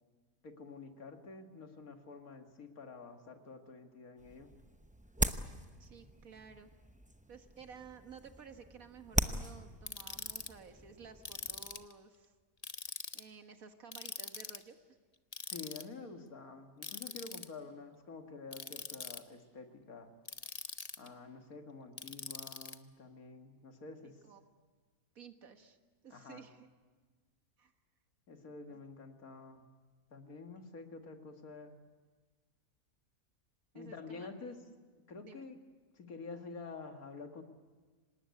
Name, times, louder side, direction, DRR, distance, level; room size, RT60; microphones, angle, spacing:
voice 1, 0.4-4.5 15.5-20.1 21.0-24.2 26.1-26.5 28.3-29.7 30.1-31.8 33.7-34.6 35.1-35.6 35.9-37.4, left 4 dB, 75° left, 5 dB, 2.4 m, -49 dB
sound 1, 4.2-11.9, right 1 dB, 10° right, 0.4 m, -40 dB
voice 2, 5.8-6.7 7.3-12.3 13.1-15.0 24.2-24.4 25.2-25.8 26.0-26.7 27.6-27.7 28.7-28.8 33.7-34.3 35.2-35.5, right 6 dB, 70° right, 7 dB, 1.9 m, -54 dB
Ratchet pawl, 9.9-10.5 11.2-11.9 12.6-13.2 13.9-14.6 15.3-15.8 16.8-17.5 18.5-19.2 20.3-21.1 22.0-22.8, left 4 dB, 30° left, 0.9 m, -43 dB
26.0 x 19.5 x 9.6 m, 1.4 s
omnidirectional pair, 1.6 m